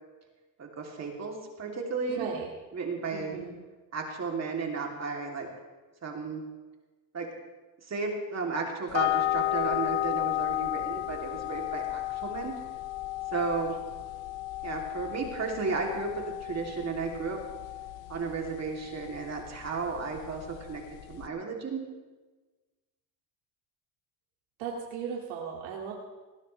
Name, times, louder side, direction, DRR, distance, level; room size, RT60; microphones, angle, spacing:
voice 1, 0.6-2.3 2.7-3.3 3.9-5.5 6.0-6.4 7.1-7.3 7.9-12.5 13.3-13.8 14.6-17.4 18.1-20.8 21.1-21.8, right 4 dB, 35° right, 0 dB, 3.1 m, -33 dB
voice 2, 2.1-2.5 3.1-3.5 24.6-25.9, right 6 dB, 90° right, -2 dB, 2.5 m, -36 dB
sound 1, 8.9-21.3, left 15 dB, 70° left, 0.8 m, -34 dB
20.0 x 19.0 x 3.4 m, 1.3 s
cardioid pair, 115°, 47 cm